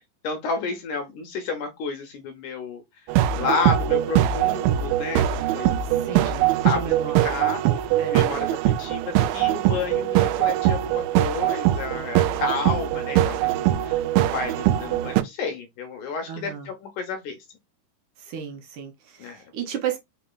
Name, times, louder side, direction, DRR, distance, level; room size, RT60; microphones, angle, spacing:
voice 1, 0.2-3.1 3.4-6.8 7.3-17.4 19.2-19.5, left 5 dB, 75° left, 1.9 m, -31 dB
sound 1, 3.1-15.2, right 13 dB, 85° right, 2.4 m, -22 dB
voice 2, 5.8-7.4 8.0-8.3 16.3-16.7 18.2-20.0, right 8 dB, 70° right, 2.2 m, -34 dB
5.4 x 4.1 x 2.2 m
omnidirectional pair, 4.3 m